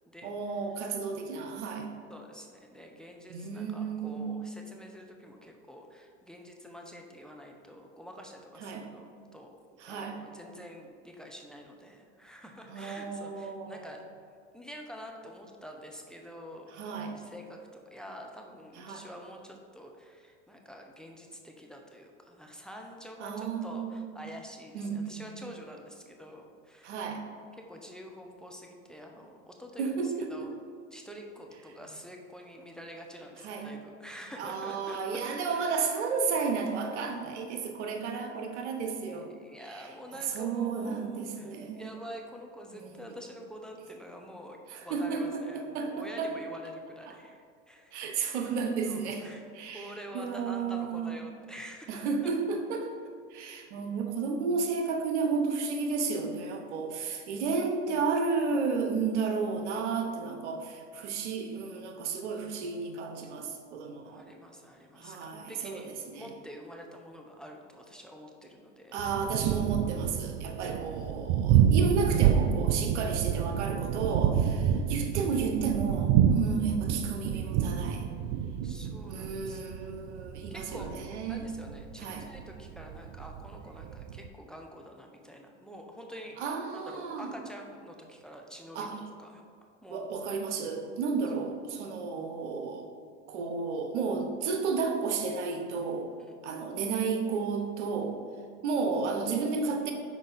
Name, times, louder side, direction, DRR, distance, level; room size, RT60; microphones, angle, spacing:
voice 1, 0.2-1.9 3.3-4.4 8.6-8.9 9.8-10.2 12.7-14.0 16.7-17.2 18.8-19.1 23.2-24.3 24.7-25.3 26.8-27.2 29.8-30.5 33.4-33.7 34.4-39.3 39.6-39.9 40.2-41.9 42.7-43.0 44.7-46.4 47.1-47.2 47.9-49.3 49.5-51.2 51.9-64.3 65.0-66.3 68.9-78.1 79.1-81.5 82.0-82.3 86.4-87.3 88.7-89.0 89.9-92.9 93.3-96.1 96.4-98.2 98.6-99.9, right 5 dB, 85° right, 4 dB, 0.9 m, -32 dB
voice 2, 2.1-9.6 9.9-14.0 14.5-16.8 17.1-27.0 27.6-30.5 30.9-35.7 39.4-48.0 48.9-49.4 49.7-52.0 53.4-53.7 64.0-65.9 66.2-69.0 70.6-70.8 74.6-74.8 78.6-79.9 80.5-80.9 81.3-89.4 89.8-90.1 96.2-96.7 98.7-98.8, equal, ahead, 2 dB, 0.7 m, -47 dB
Thunder, 69.0-84.3, right 9 dB, 65° right, 0.5 m, -28 dB
6.1 x 4.7 x 4.1 m, 2.2 s
hypercardioid pair, 95°, 34 cm